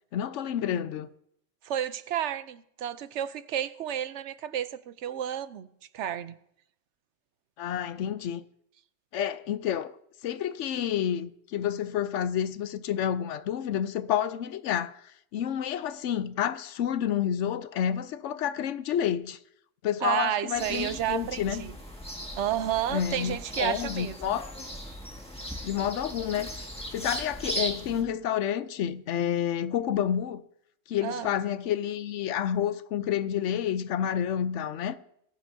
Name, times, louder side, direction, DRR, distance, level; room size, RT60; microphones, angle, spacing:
voice 1, 0.1-1.1 7.6-8.4 9.1-9.9 10.2-19.4 19.8-21.7 22.9-24.5 25.6-26.6 26.9-30.4 30.9-35.0, left 9 dB, 90° left, 1.0 m, -29 dB
voice 2, 1.6-5.7 5.9-6.4 20.0-21.7 22.4-24.4 31.0-31.3, right 10 dB, 80° right, 0.9 m, -31 dB
sound 1, 20.6-28.0, equal, 5° left, 1.8 m, -38 dB
20.5 x 10.5 x 2.7 m
omnidirectional pair, 1.2 m